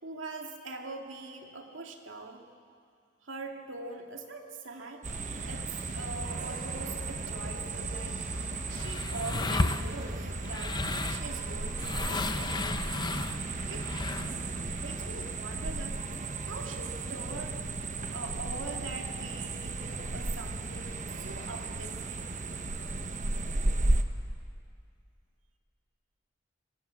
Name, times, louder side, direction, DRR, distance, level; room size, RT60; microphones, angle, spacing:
voice 1, 0.0-2.4 3.2-5.0 5.4-8.3 8.7-10.8 11.1-12.8 13.7-13.9 14.2-16.0 16.4-22.3 22.7-22.9, right 3 dB, 80° right, 2 dB, 2.3 m, -43 dB
sound 1, 5.0-15.3, equal, 5° right, 5.8 m, -45 dB
sound 2, 5.0-24.0, right 2 dB, 40° right, 1.1 m, -35 dB
sound 3, 8.1-14.5, left 2 dB, 20° left, 0.7 m, -34 dB
25.0 x 19.5 x 7.6 m, 2.2 s
head